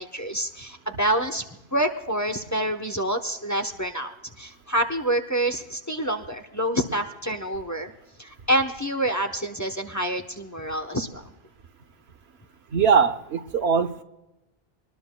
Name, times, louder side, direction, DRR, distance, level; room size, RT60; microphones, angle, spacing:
voice 1, 0.0-1.4 1.7-7.9 8.2-11.2, right 1 dB, 20° left, 6 dB, 0.8 m, -27 dB
voice 2, 12.7-14.0, right 6 dB, 80° right, 9 dB, 1.2 m, -21 dB
24.5 x 20.0 x 2.2 m, 0.98 s
omnidirectional pair, 1.1 m